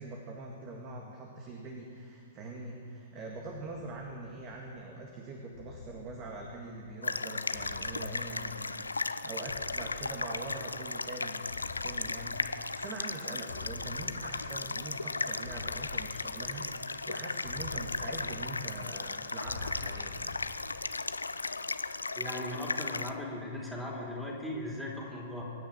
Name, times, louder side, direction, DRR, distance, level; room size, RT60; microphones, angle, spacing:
voice 1, 0.0-20.4, right 2 dB, 30° right, 1 dB, 1.9 m, -43 dB
sound 1, 3.6-4.9 5.5-7.1 7.5-9.1 9.5-11.1 11.5-13.1 13.5-15.1 15.4-17.0 17.4-19.1 19.4-21.1, left 4 dB, 60° left, 1.6 m, -48 dB
sound 2, 7.0-23.1, left 3 dB, 80° left, 0.5 m, -36 dB
voice 2, 22.2-25.4, left 1 dB, 5° right, -3 dB, 3.8 m, -38 dB
23.5 x 9.7 x 6.0 m, 2.5 s
figure-of-eight pair, 110°, 0 cm